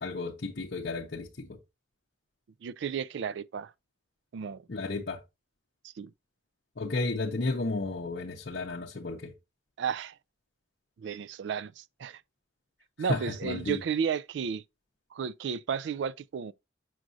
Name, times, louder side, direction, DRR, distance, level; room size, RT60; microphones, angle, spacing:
voice 1, 0.0-1.6 4.7-5.2 6.8-9.3 13.0-13.8, left 3 dB, 55° left, 0.6 m, -33 dB
voice 2, 2.6-3.7 4.3-4.7 5.8-6.1 9.8-10.2 11.0-12.2 13.0-14.6 15.1-16.5, right 7 dB, 65° right, 0.3 m, -33 dB
6.3 x 6.0 x 2.6 m
head